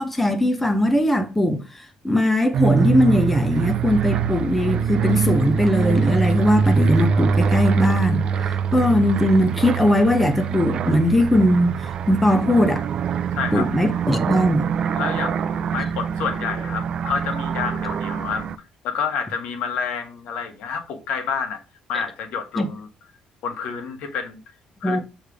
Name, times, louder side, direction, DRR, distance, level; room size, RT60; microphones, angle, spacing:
voice 1, 0.0-12.8 13.5-14.7 22.6-22.7 24.8-25.0, left 1 dB, 5° left, 0.6 m, -20 dB
sound 1, 2.5-18.6, right 6 dB, 45° right, 0.4 m, -23 dB
voice 2, 13.3-13.7 14.9-18.4 18.8-21.6 21.9-22.9 23.4-24.4 24.8-25.0, left 6 dB, 70° left, 1.3 m, -28 dB
6.4 x 3.3 x 4.9 m
cardioid pair, 165°, 2 cm